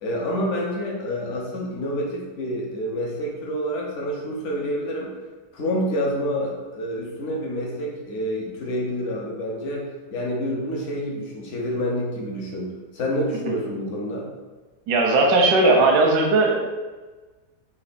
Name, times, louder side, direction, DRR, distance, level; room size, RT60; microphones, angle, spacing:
voice 1, 0.0-5.1 5.5-12.7 12.9-14.3, equal, 50° left, -2 dB, 1.0 m, -28 dB
voice 2, 14.9-16.6, right 2 dB, 90° right, 1 dB, 1.3 m, -17 dB
4.2 x 2.8 x 4.1 m, 1.3 s
omnidirectional pair, 1.9 m